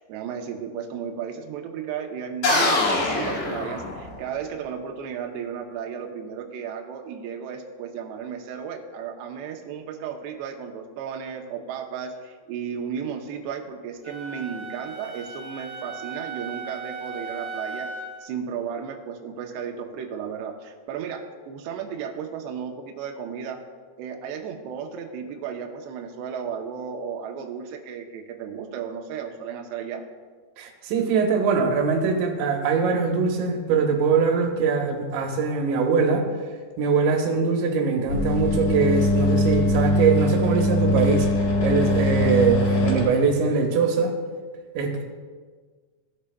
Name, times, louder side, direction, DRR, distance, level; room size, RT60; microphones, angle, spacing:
voice 1, 0.0-17.9 18.2-23.6 24.0-30.0, right 7 dB, 90° right, 3 dB, 2.4 m, -34 dB
sound 1, 2.4-4.4, left 2 dB, 85° left, 1.6 m, -23 dB
Wind instrument woodwind instrument, 14.0-18.2, right 4 dB, 30° right, 1.6 m, -37 dB
voice 2, 30.6-36.3 36.8-41.3 41.6-44.1 44.7-45.0, right 5 dB, 75° right, 2 dB, 3.0 m, -22 dB
sound 2, 38.1-43.1, left 1 dB, 60° left, 3.4 m, -22 dB
16.5 x 8.7 x 2.2 m, 1.5 s
omnidirectional pair, 5.8 m